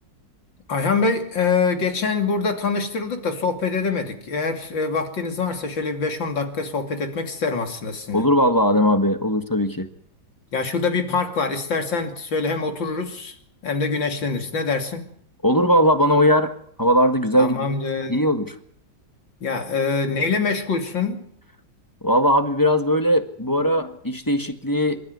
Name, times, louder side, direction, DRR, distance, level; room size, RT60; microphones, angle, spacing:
voice 1, 0.7-8.2 10.5-13.4 13.6-15.0 17.4-18.2 19.4-21.3, left 4 dB, 85° left, 3.4 m, -24 dB
voice 2, 8.1-9.9 15.4-16.5 16.8-17.7 18.1-18.5 22.0-25.0, equal, 10° left, 1.4 m, -19 dB
26.5 x 13.0 x 9.5 m
omnidirectional pair, 2.0 m